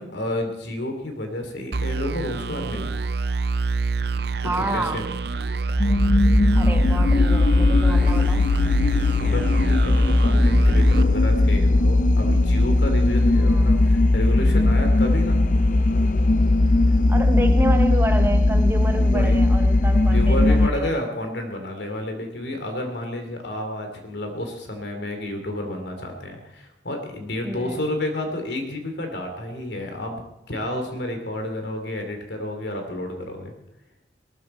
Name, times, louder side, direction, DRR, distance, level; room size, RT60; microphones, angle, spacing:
voice 1, 0.0-2.9 4.4-5.0 8.8-15.4 19.1-19.4 20.0-33.5, left 1 dB, 80° left, 5 dB, 2.9 m, -30 dB
sound 1, 1.7-12.0, right 4 dB, 65° right, 0.6 m, -27 dB
voice 2, 4.4-5.1 6.5-8.5 13.4-13.8 17.1-21.0 27.4-27.8, right 1 dB, 10° right, 6 dB, 1.0 m, -29 dB
sound 2, 5.7-20.7, left 2 dB, 45° left, 0.7 m, -18 dB
18.5 x 13.0 x 4.4 m, 0.86 s
head